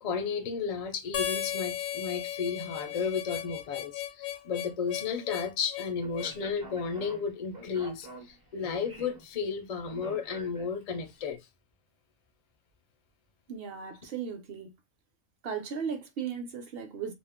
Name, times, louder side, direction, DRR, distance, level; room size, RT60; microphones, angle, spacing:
voice 1, 0.0-11.4, left 6 dB, 55° left, 0.4 m, -33 dB
Harmonica, 1.1-6.4, left 11 dB, 80° left, 1.0 m, -36 dB
Speech, 6.0-11.1, right 3 dB, 25° right, 0.4 m, -48 dB
voice 2, 13.5-14.7 15.4-17.1, right 6 dB, 60° right, 0.7 m, -36 dB
2.4 x 2.0 x 3.5 m
omnidirectional pair, 1.4 m